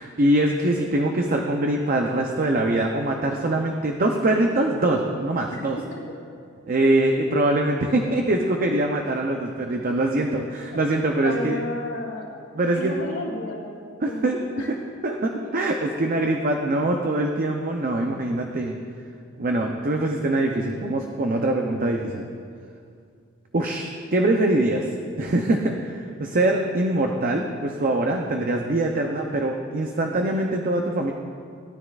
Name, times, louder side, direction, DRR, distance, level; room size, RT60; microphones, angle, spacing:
voice 1, 0.0-5.8 6.7-11.6 12.5-12.9 14.0-14.4 15.0-18.8 19.4-22.3 23.5-24.9 25.2-31.1, right 1 dB, 45° right, 2 dB, 0.6 m, -23 dB
voice 2, 11.2-12.3 12.7-13.6 14.1-14.7 15.3-15.4, left 2 dB, 65° left, -3 dB, 2.7 m, -32 dB
17.5 x 10.0 x 2.4 m, 2.3 s
head